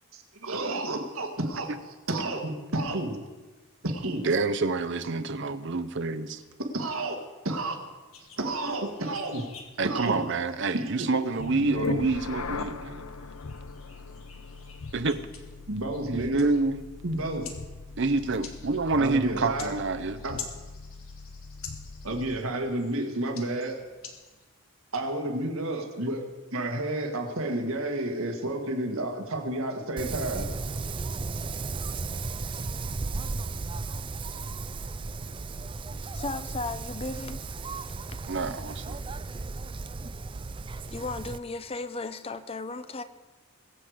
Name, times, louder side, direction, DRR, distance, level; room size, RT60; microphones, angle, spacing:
voice 1, 0.1-1.7 2.1-3.2 3.8-4.3 6.7-7.2 7.4-7.8 8.4-9.4 9.8-10.2 10.7-11.1 15.7-16.5 17.0-17.5 19.0-19.7 20.2-20.4 22.0-23.8 24.9-26.3 26.5-30.4, right 1 dB, 70° right, 1.8 m, -30 dB
voice 2, 4.2-6.4 9.8-13.0 14.9-15.2 16.1-16.8 18.0-20.2 38.3-39.0, right 3 dB, 55° right, 0.7 m, -27 dB
sound 1, 8.1-24.4, left 6 dB, 70° left, 1.8 m, -49 dB
sound 2, 11.4-22.5, left 3 dB, 90° left, 0.7 m, -39 dB
Wind, 30.0-41.4, right 3 dB, 25° right, 0.4 m, -35 dB
voice 3, 36.1-37.4 38.1-38.2 40.9-43.0, left 3 dB, 25° left, 0.6 m, -35 dB
21.5 x 7.9 x 5.0 m
head